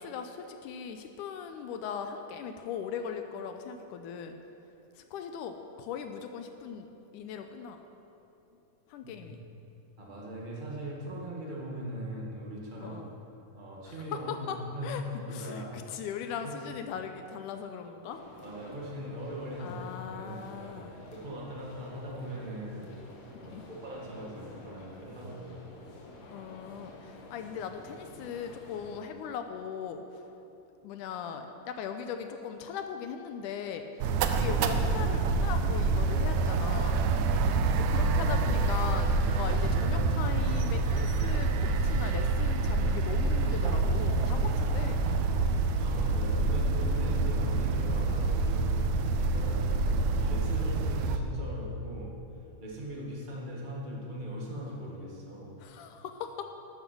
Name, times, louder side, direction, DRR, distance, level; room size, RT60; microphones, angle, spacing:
voice 1, 0.0-4.4 5.0-6.9 7.1-7.8 8.9-9.4 12.8-13.1 13.8-14.0 14.3-14.6 14.8-15.0 15.3-18.2 19.6-20.9 23.4-23.7 26.3-30.2 30.8-37.0 37.7-45.0 55.6-56.4, left 7 dB, 80° left, 6 dB, 2.0 m, -39 dB
voice 2, 10.0-13.0 13.5-15.8 16.4-16.5 18.4-19.8 20.1-20.8 21.1-22.9 23.4-25.7 45.8-48.9 49.2-52.2 52.6-55.6, equal, 35° right, -3 dB, 0.7 m, -40 dB
sound 1, 18.1-29.0, left 2 dB, 60° left, 2.1 m, -50 dB
sound 2, 34.0-51.2, right 3 dB, 85° right, 1.6 m, -27 dB
13.0 x 7.9 x 6.0 m, 3.0 s
omnidirectional pair, 3.8 m